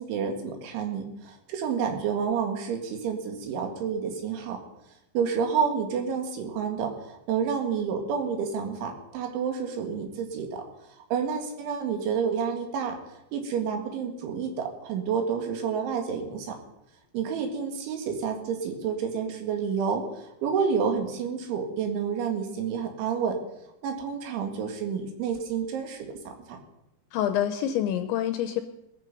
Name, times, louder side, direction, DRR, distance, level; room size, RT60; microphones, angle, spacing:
voice 1, 0.0-4.6 5.1-10.6 11.1-13.0 13.3-16.6 17.1-23.4 23.8-26.6, right 6 dB, 70° right, 4 dB, 4.2 m, -29 dB
voice 2, 27.1-28.6, left 10 dB, 80° left, 9 dB, 2.7 m, -26 dB
20.0 x 13.5 x 5.4 m, 0.86 s
omnidirectional pair, 5.9 m